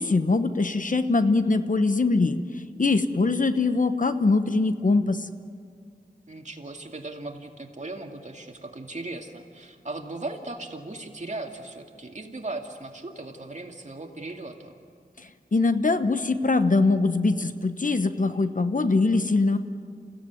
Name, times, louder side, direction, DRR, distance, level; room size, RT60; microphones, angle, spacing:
voice 1, 0.0-2.4 2.8-5.2 15.5-19.6, left 3 dB, 55° left, 9 dB, 1.1 m, -22 dB
voice 2, 6.3-14.7, right 2 dB, 50° right, 2 dB, 2.3 m, -37 dB
28.5 x 16.0 x 9.5 m, 2.2 s
wide cardioid pair, 60°, 16 cm